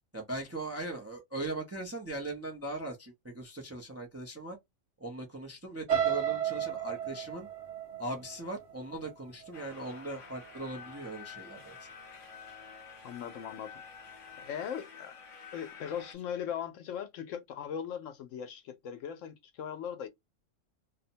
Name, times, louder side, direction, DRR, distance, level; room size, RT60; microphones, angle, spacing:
voice 1, 0.1-4.6 5.0-7.5 8.0-11.9, right 2 dB, 20° right, 0.4 m, -39 dB
sound 1, 5.9-9.8 10.3-10.6 11.0-11.1, right 9 dB, 65° right, 1.1 m, -33 dB
sound 2, 9.5-16.1, left 5 dB, 40° left, 0.5 m, -49 dB
voice 2, 13.0-14.1 14.4-15.2 15.5-20.1, left 8 dB, 75° left, 0.9 m, -39 dB
2.6 x 2.1 x 2.7 m
omnidirectional pair, 1.3 m